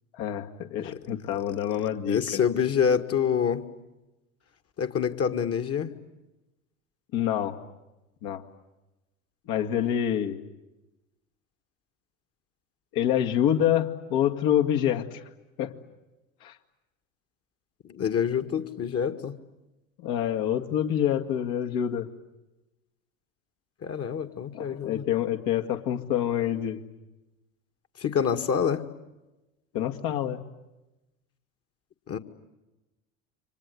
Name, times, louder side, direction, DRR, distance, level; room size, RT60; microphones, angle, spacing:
voice 1, 0.1-2.4 7.1-7.6 8.2-8.4 9.5-10.4 12.9-15.2 15.6-15.7 16.4-16.5 20.0-22.1 24.5-26.8 29.7-30.4, left 10 dB, 55° left, 4 dB, 2.1 m, -27 dB
voice 2, 2.0-3.6 4.8-5.9 17.8-19.3 23.8-25.1 28.0-28.9 32.1-32.2, left 7 dB, 35° left, 8 dB, 1.9 m, -26 dB
29.0 x 25.0 x 8.2 m, 1.0 s
figure-of-eight pair, 75°, 42 cm